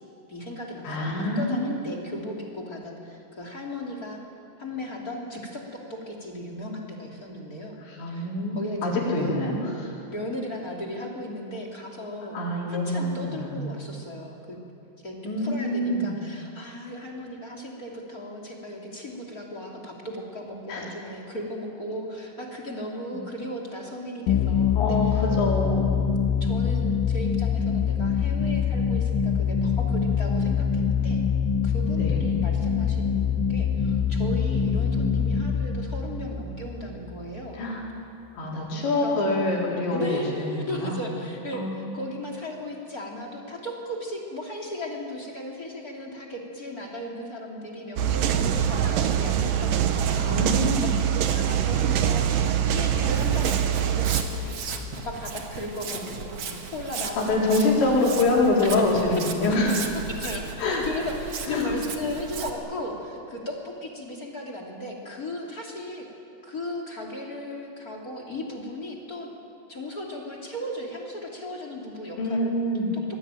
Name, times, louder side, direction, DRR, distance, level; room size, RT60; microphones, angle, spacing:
voice 1, 0.3-4.2 4.6-8.3 8.5-9.4 10.1-12.4 12.7-14.6 15.0-25.2 26.4-31.2 31.6-37.6 38.7-39.2 39.9-54.6 54.9-57.9 58.6-58.9 60.1-60.5 60.8-66.1 66.4-69.3 69.7-72.5, left 1 dB, 25° left, 1 dB, 2.4 m, -36 dB
voice 2, 0.8-2.1 7.9-9.9 12.2-13.8 15.2-16.1 20.7-20.8 24.8-25.1 25.4-26.0 32.0-32.2 37.5-37.8 38.4-41.0 41.5-41.8 50.2-50.9 57.2-59.9 60.6-60.8 61.5-61.7 72.2-72.9, left 2 dB, 65° left, -3 dB, 6.5 m, -25 dB
sound 1, 24.3-37.6, left 6 dB, 80° left, 3.6 m, -24 dB
ter court, 48.0-54.2, right 9 dB, 70° right, 2.1 m, -24 dB
Walk footsteps, 53.1-62.5, right 5 dB, 90° right, 1.3 m, -36 dB
25.5 x 22.0 x 9.1 m, 2.6 s
omnidirectional pair, 5.6 m